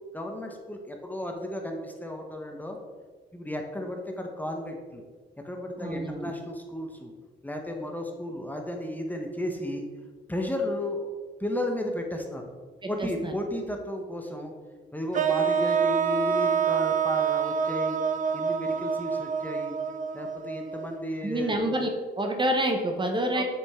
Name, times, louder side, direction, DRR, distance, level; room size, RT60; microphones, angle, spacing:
voice 1, 0.1-2.8 3.3-5.0 5.4-7.1 7.4-9.9 10.3-11.1 11.4-12.5 12.8-14.5 14.9-18.0 18.3-19.8 20.1-21.6 23.3-23.4, left 1 dB, 10° left, 2 dB, 0.9 m, -34 dB
voice 2, 5.8-6.3 12.8-13.3 21.2-21.9 22.2-23.4, right 1 dB, 25° right, 3 dB, 0.9 m, -27 dB
sound 1, 15.1-21.2, right 6 dB, 40° right, 0.5 m, -27 dB
7.1 x 5.2 x 3.6 m, 1.5 s
cardioid pair, 90°, 20 cm